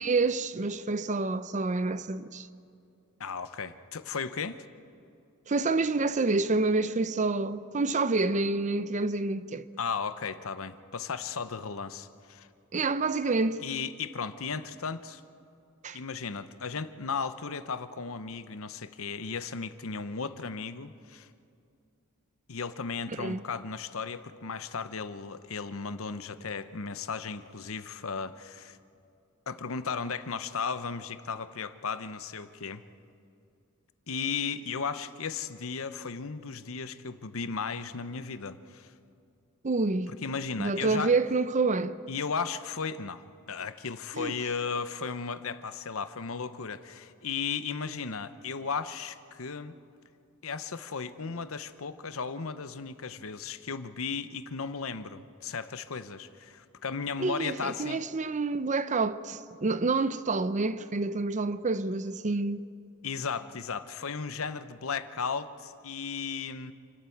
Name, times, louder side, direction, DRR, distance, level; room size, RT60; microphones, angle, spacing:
voice 1, 0.0-2.5 5.5-9.7 12.7-13.6 15.8-16.0 23.2-23.4 39.6-40.1 40.6-42.0 44.1-44.3 57.2-62.7, right 3 dB, 35° right, 0.6 m, -28 dB
voice 2, 3.2-4.6 9.8-12.5 13.6-15.2 15.9-21.3 22.5-28.8 29.5-32.8 34.1-38.9 40.1-41.1 42.1-49.8 50.4-58.0 63.0-66.7, left 5 dB, 70° left, 0.9 m, -35 dB
28.5 x 12.5 x 8.5 m
head